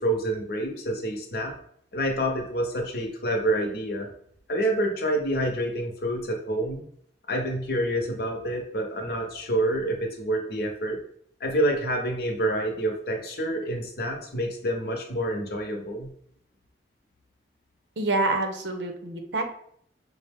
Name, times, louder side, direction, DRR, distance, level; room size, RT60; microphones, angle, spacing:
voice 1, 0.0-1.5 1.9-4.1 4.5-6.8 7.3-11.0 11.4-16.1, right 1 dB, 60° left, 2 dB, 0.8 m, -27 dB
voice 2, 18.0-19.4, right 2 dB, 80° right, 5 dB, 0.7 m, -27 dB
5.4 x 2.1 x 3.5 m, 0.66 s
head